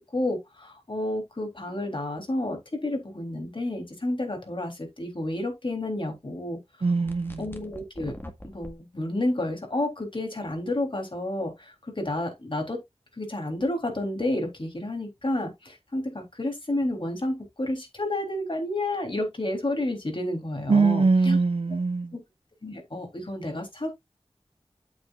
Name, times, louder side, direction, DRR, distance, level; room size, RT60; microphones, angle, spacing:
voice 1, 0.1-6.6 7.4-8.2 8.5-12.8 13.2-21.4 22.1-22.2 22.6-23.9, left 1 dB, 55° left, 3.5 m, -30 dB
voice 2, 6.8-7.4 20.7-22.1, right 4 dB, 65° right, 0.6 m, -22 dB
sound 1, 7.1-8.7, left 1 dB, 20° left, 1.8 m, -42 dB
8.5 x 7.4 x 2.5 m
wide cardioid pair, 40°, 11 cm